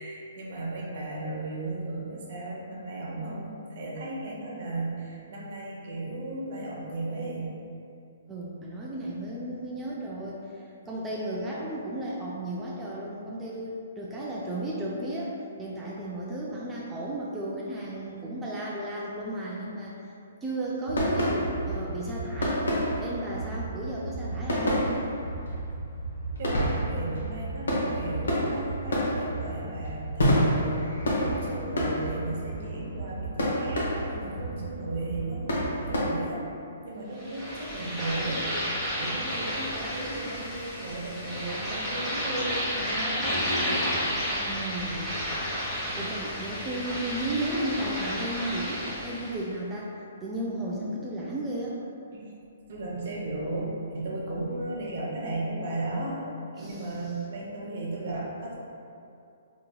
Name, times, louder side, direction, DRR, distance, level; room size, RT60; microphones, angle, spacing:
voice 1, 0.0-7.6 26.4-36.4 36.8-38.4 39.0-43.4 45.9-46.1 52.1-52.2 52.7-56.2 56.5-58.5, right 2 dB, 55° right, -4 dB, 0.8 m, -35 dB
voice 2, 8.3-20.0 20.4-22.7 23.0-24.9 44.3-45.2 45.9-49.9 50.2-51.8 56.6-57.1, right 1 dB, 15° right, -5 dB, 0.3 m, -34 dB
sound 1, 20.9-36.0, equal, 75° left, 0.8 m, -29 dB
sound 2, 37.2-49.4, equal, ahead, 0.9 m, -31 dB
3.5 x 2.9 x 2.2 m, 2.6 s
hypercardioid pair, 135°, 0 cm